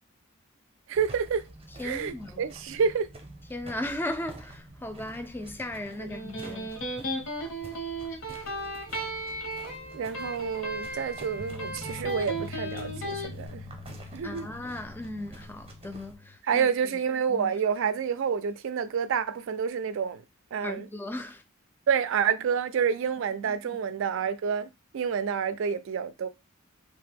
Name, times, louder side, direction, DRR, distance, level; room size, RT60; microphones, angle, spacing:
sound 1, 0.9-16.2, right 1 dB, 25° right, 0.6 m, -47 dB
voice 1, 0.9-1.4 1.8-3.1 6.0-6.1 9.9-13.6 14.1-14.5 16.4-20.2 20.5-20.9 21.9-26.3, right 6 dB, 65° right, 0.4 m, -28 dB
voice 2, 1.8-2.4 3.5-6.7 14.2-16.7 17.3-17.5 20.6-21.4 23.4-23.8, left 1 dB, 10° left, 0.3 m, -37 dB
Electric guitar, 5.9-13.3, right 1 dB, 70° left, 0.9 m, -35 dB
sound 2, 11.4-16.4, left 3 dB, 90° left, 0.5 m, -45 dB
2.8 x 2.1 x 3.4 m
head